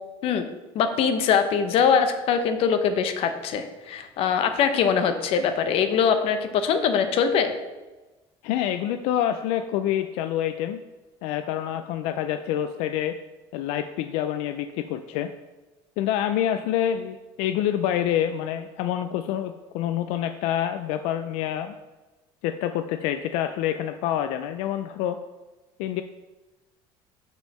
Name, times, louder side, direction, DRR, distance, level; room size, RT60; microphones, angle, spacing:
voice 1, 0.7-7.5, left 7 dB, 60° left, 9 dB, 0.7 m, -22 dB
voice 2, 8.4-10.8 11.2-13.2 13.5-15.3 16.0-21.7 22.4-25.2 25.8-26.0, left 11 dB, 85° left, 9 dB, 0.4 m, -27 dB
6.1 x 5.4 x 4.3 m, 1.1 s
cardioid pair, 130°, 11 cm